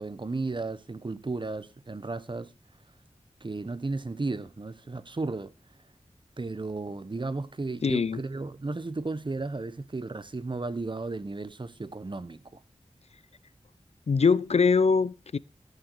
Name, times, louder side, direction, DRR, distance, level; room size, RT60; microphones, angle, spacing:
voice 1, 0.0-2.5 3.4-5.5 6.4-12.6, right 3 dB, 40° right, 1.0 m, -34 dB
voice 2, 7.8-8.2 14.1-15.4, left 5 dB, 65° left, 0.5 m, -23 dB
16.0 x 6.8 x 4.6 m
wide cardioid pair, 70°, 12 cm